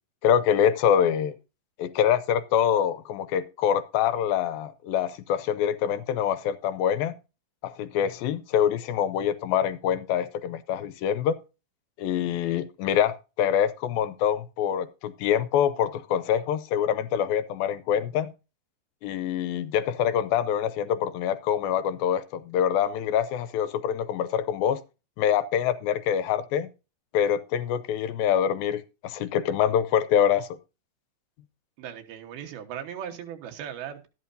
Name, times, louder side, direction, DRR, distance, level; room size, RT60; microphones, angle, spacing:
voice 1, 0.2-1.3 1.8-7.1 7.6-11.4 12.0-18.3 19.0-24.8 25.2-26.7 27.1-30.5, left 9 dB, 80° left, 2.5 m, -25 dB
voice 2, 31.8-34.1, right 9 dB, 85° right, 3.2 m, -38 dB
12.5 x 11.0 x 2.6 m
omnidirectional pair, 4.3 m